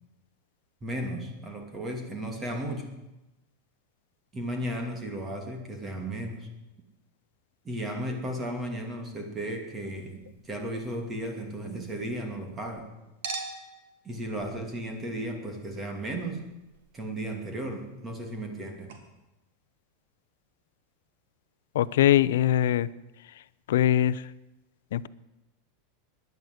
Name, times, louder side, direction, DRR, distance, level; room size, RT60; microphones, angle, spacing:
voice 1, 0.8-2.9 4.3-6.5 7.6-12.9 14.0-16.5 16.9-18.9, right 1 dB, 15° right, 4 dB, 2.6 m, -35 dB
Chink clink, 9.9-12.8 13.2-18.6 18.9-19.0, right 4 dB, 70° right, 2.7 m, -46 dB
voice 2, 21.7-22.9 23.7-24.2 24.9-25.1, left 12 dB, 85° left, 17 dB, 0.6 m, -22 dB
17.0 x 10.5 x 7.9 m, 0.99 s
supercardioid pair, 155°, 0 cm